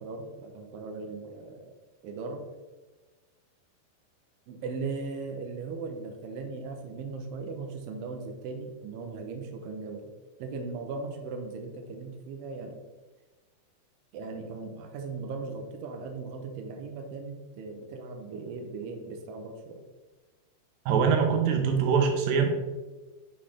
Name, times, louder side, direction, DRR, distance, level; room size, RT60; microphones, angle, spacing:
voice 1, 0.0-1.7 2.0-2.5 4.5-10.1 10.4-12.8 14.1-19.8, right 4 dB, 90° right, 4 dB, 2.0 m, -38 dB
voice 2, 20.9-22.6, right 6 dB, 70° right, 3 dB, 2.5 m, -23 dB
9.6 x 4.0 x 3.3 m, 1.2 s
omnidirectional pair, 4.7 m